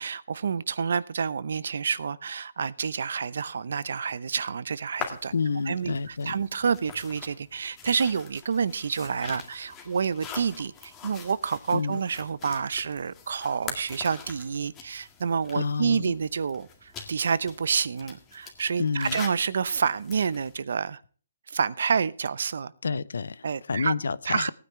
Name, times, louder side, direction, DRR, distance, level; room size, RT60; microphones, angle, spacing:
voice 1, 0.0-5.3 5.7-21.0 21.5-22.7 23.4-23.9 24.3-24.5, right 6 dB, 65° right, 18 dB, 0.8 m, -28 dB
sound 1, 5.0-20.6, left 6 dB, 15° left, 2.0 m, -44 dB
voice 2, 5.3-6.3 11.7-12.0 15.5-16.1 18.8-19.2 22.8-24.5, left 5 dB, 80° left, 19 dB, 0.7 m, -29 dB
18.0 x 9.5 x 3.2 m, 0.40 s
hypercardioid pair, 165°, 0 cm